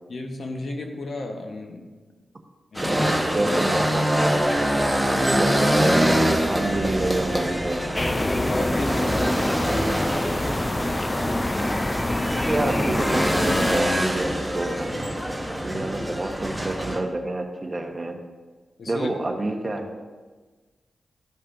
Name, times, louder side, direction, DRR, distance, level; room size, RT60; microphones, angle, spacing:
voice 1, 0.1-1.9 2.7-3.0 3.4-3.5 5.1-5.3 8.1-10.8 15.7-15.9 18.8-19.1, left 2 dB, 70° left, 4 dB, 1.0 m, -35 dB
sound 1, 2.7-17.0, equal, ahead, 1.2 m, -25 dB
voice 2, 3.3-4.5 5.0-7.8 12.5-15.2 15.6-18.1 18.9-20.0, right 2 dB, 35° right, 3 dB, 1.0 m, -28 dB
sound 2, 8.0-13.8, left 1 dB, 20° left, 0.4 m, -26 dB
13.0 x 5.4 x 2.6 m, 1.3 s
cardioid pair, 70°, 0 cm